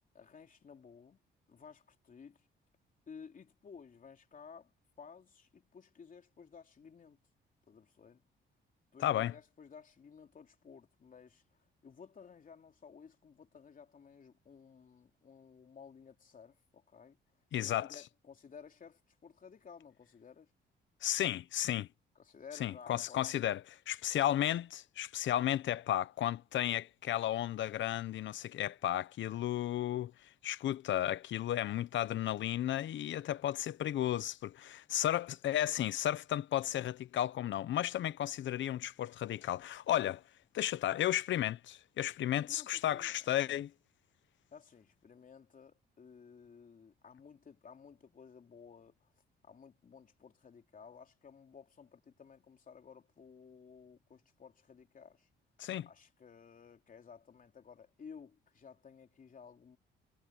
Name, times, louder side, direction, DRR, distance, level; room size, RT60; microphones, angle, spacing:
voice 1, 0.1-1.2 1.5-2.5 3.1-7.2 7.7-8.2 8.9-17.2 17.6-20.5 22.1-23.3 42.3-43.6 44.5-49.1 49.4-55.3 55.8-59.8, left 6 dB, 45° left, 3.3 m, -55 dB
voice 2, 9.0-9.3 17.5-18.0 21.0-21.9 22.6-30.1 30.4-40.2 40.5-43.7 55.6-55.9, left 12 dB, 70° left, 1.0 m, -33 dB
cardioid pair, 90°, 20 cm